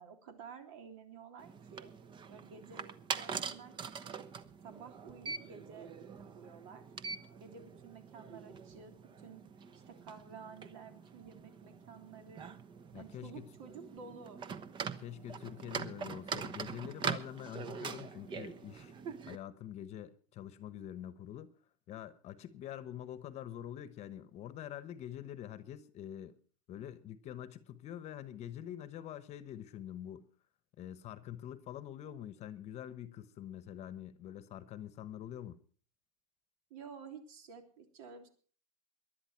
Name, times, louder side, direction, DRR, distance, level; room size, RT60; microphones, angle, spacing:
voice 1, 0.0-1.9 2.3-3.7 4.0-4.3 4.6-5.9 6.2-6.8 7.4-9.4 9.7-12.6 12.9-14.4 36.7-38.3, right 6 dB, 65° right, 3.4 m, -52 dB
sound 1, 1.4-19.4, right 6 dB, 25° right, 1.0 m, -44 dB
voice 2, 12.9-13.5 15.0-18.9 19.3-21.5 21.9-26.4 26.7-30.3 30.8-35.6, left 11 dB, 35° left, 1.1 m, -45 dB
19.0 x 11.5 x 4.5 m
supercardioid pair, 135°, 19 cm